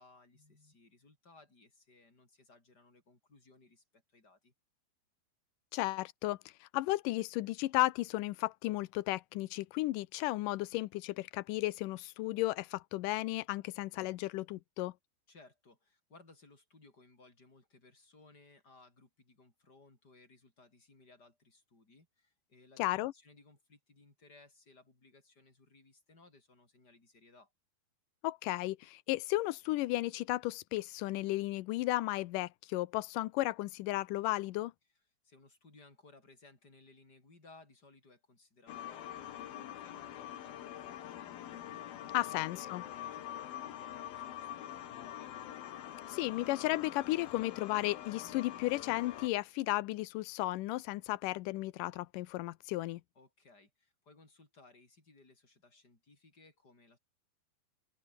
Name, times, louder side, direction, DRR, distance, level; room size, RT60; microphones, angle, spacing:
voice 1, 0.0-4.5 15.3-27.5 35.2-45.4 53.1-57.0, left 3 dB, 25° left, 6.1 m, -62 dB
voice 2, 5.7-14.9 22.8-23.1 28.2-34.7 42.1-42.8 46.1-53.0, left 18 dB, 85° left, 1.9 m, -34 dB
sound 1, 38.7-49.3, left 11 dB, 70° left, 3.4 m, -45 dB
open air
omnidirectional pair, 4.7 m